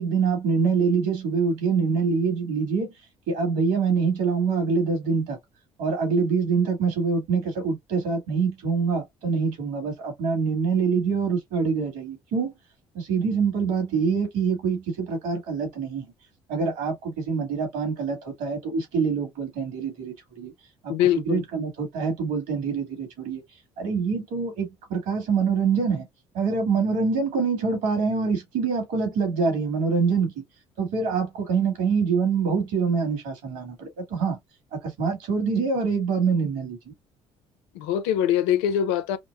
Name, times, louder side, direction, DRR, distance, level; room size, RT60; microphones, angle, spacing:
voice 1, 0.0-2.9 3.3-5.4 5.8-12.5 12.9-16.1 16.5-20.5 20.8-20.9 21.3-23.4 23.8-26.1 26.3-30.3 30.8-34.4 34.7-36.9, right 5 dB, 70° right, 2.1 m, -25 dB
voice 2, 20.9-21.4 37.7-39.2, left 10 dB, 80° left, 0.5 m, -23 dB
5.1 x 2.2 x 2.3 m
hypercardioid pair, 60°, 14 cm